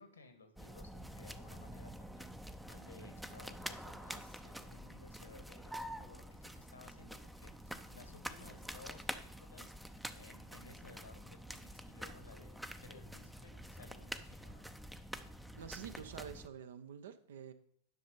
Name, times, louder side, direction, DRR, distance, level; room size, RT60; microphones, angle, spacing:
voice 1, 0.0-14.7, left 3 dB, 75° left, 7 dB, 1.7 m, -59 dB
sound 1, 0.6-16.5, equal, ahead, 0.6 m, -47 dB
voice 2, 15.6-17.5, right 8 dB, 60° right, 10 dB, 0.8 m, -48 dB
10.5 x 6.2 x 5.3 m, 0.66 s
figure-of-eight pair, 90°, 0 cm